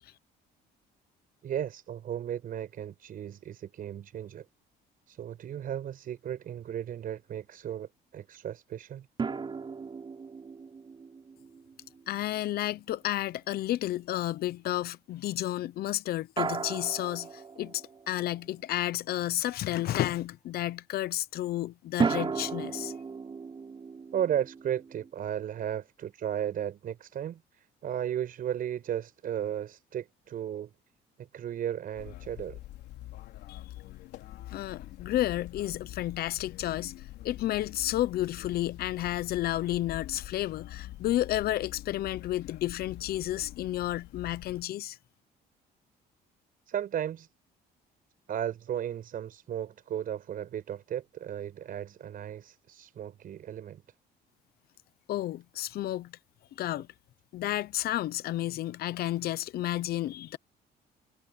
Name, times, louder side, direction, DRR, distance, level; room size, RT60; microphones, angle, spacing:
voice 1, 1.4-4.4 5.1-9.1 24.1-30.7 31.2-32.6 46.7-47.3 48.3-53.8, right 10 dB, 55° right, 6.4 m, -35 dB
sound 1, 9.2-12.5 16.4-18.4 22.0-25.1, right 5 dB, 30° right, 3.7 m, -35 dB
voice 2, 12.1-23.0 33.5-33.6 34.5-36.9 37.2-45.0 55.1-56.1 56.6-56.9 57.3-60.4, left 14 dB, 65° left, 0.9 m, -31 dB
sound 2, 31.9-44.6, left 15 dB, 80° left, 3.6 m, -45 dB
cardioid pair, 110°, 17 cm